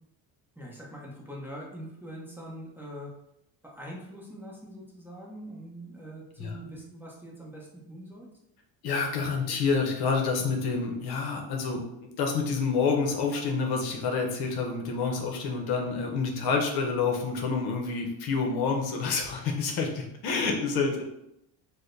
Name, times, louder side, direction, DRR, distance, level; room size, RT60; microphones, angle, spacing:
voice 1, 0.6-3.1 3.6-8.3 9.5-9.6, equal, 5° right, -4 dB, 0.8 m, -43 dB
voice 2, 8.8-11.8 12.2-21.0, left 4 dB, 60° left, 2 dB, 0.8 m, -28 dB
4.6 x 2.2 x 2.6 m, 0.82 s
cardioid pair, 105°, 42 cm